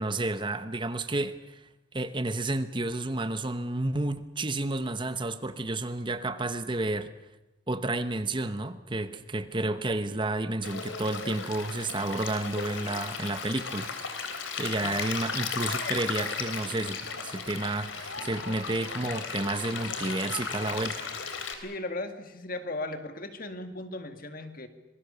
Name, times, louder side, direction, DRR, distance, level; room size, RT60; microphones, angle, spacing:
voice 1, 0.0-1.6 1.9-7.1 7.7-13.9 14.6-17.0 17.2-21.1, right 2 dB, 25° right, 11 dB, 1.0 m, -31 dB
Stream, 10.6-21.5, left 5 dB, 90° left, 3.4 m, -35 dB
voice 2, 21.6-24.7, left 2 dB, 50° left, 8 dB, 2.0 m, -37 dB
26.5 x 21.0 x 6.9 m, 0.97 s
head